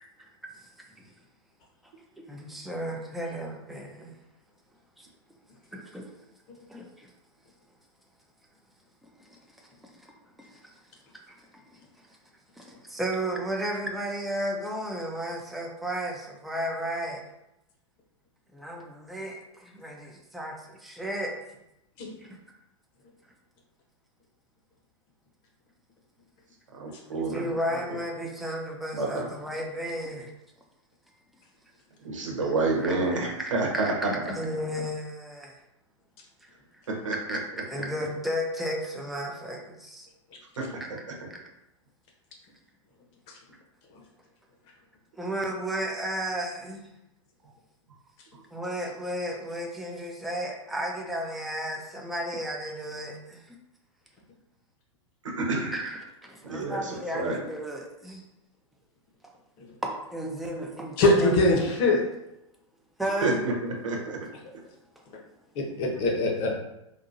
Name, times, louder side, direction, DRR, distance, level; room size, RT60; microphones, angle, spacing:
voice 1, 2.3-4.1 5.0-5.1 5.7-6.1 6.7-7.1 9.2-10.7 11.3-11.8 12.1-12.2 12.5-17.2 18.5-21.4 22.2-22.4 27.3-30.3 32.4-35.6 36.4-36.8 37.3-40.1 41.3-41.4 45.1-46.8 48.5-53.6 55.7-58.2 59.8-61.7 63.0-63.4, equal, ahead, 0 dB, 0.5 m, -34 dB
voice 2, 26.7-27.5 28.9-29.3 32.0-34.1 36.9-37.4 40.6-41.0 55.4-55.7 56.4-57.4 63.2-64.2, right 3 dB, 90° right, -1 dB, 1.0 m, -29 dB
voice 3, 61.0-62.0 65.5-66.5, left 2 dB, 45° left, 1 dB, 0.9 m, -23 dB
4.0 x 2.6 x 2.6 m, 0.88 s
hypercardioid pair, 110°, 16 cm